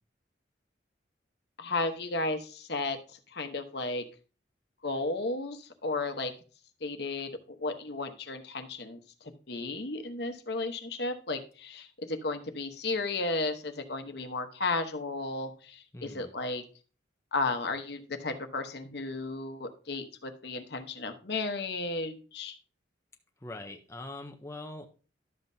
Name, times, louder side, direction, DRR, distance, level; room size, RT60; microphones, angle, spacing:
voice 1, 1.6-4.0 4.8-6.3 6.8-16.6 17.3-22.5, left 3 dB, 60° left, 7 dB, 1.0 m, -34 dB
voice 2, 15.9-16.3 23.4-24.9, left 2 dB, 15° left, 3 dB, 0.6 m, -42 dB
12.0 x 7.4 x 2.7 m, 0.37 s
head